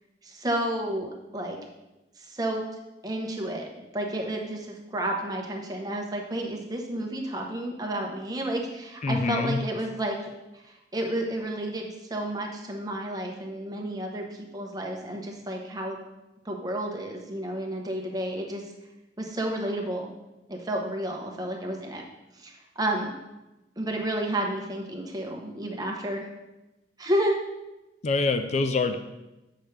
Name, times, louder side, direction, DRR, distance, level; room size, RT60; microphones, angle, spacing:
voice 1, 0.2-1.6 2.2-2.6 3.0-10.2 10.5-16.0 16.4-18.6 19.2-20.1 20.5-22.0 22.4-23.1 23.8-26.3 27.0-27.4, right 1 dB, 20° right, 1 dB, 1.0 m, -31 dB
voice 2, 9.0-9.6 28.0-29.0, left 3 dB, 40° left, 8 dB, 0.4 m, -25 dB
8.3 x 5.8 x 3.3 m, 0.99 s
head